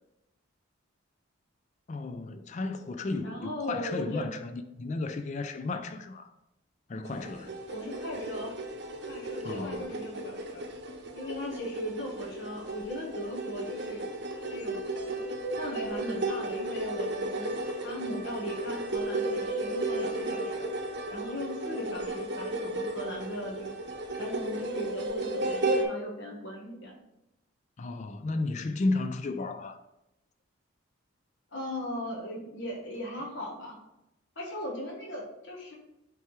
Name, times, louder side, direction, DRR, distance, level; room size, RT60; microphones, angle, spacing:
voice 1, 1.9-6.3 6.9-7.6 9.4-9.9 27.8-29.8, left 2 dB, 35° left, 0.3 m, -33 dB
voice 2, 3.2-4.3 7.7-8.6 9.0-10.6 11.1-14.1 14.5-15.2 15.6-17.5 17.8-20.7 21.1-23.7 24.2-27.0 31.5-33.8 34.4-35.8, equal, 60° left, 1.2 m, -38 dB
sound 1, 7.0-25.8, right 2 dB, 55° right, 0.7 m, -34 dB
8.9 x 3.4 x 3.2 m
head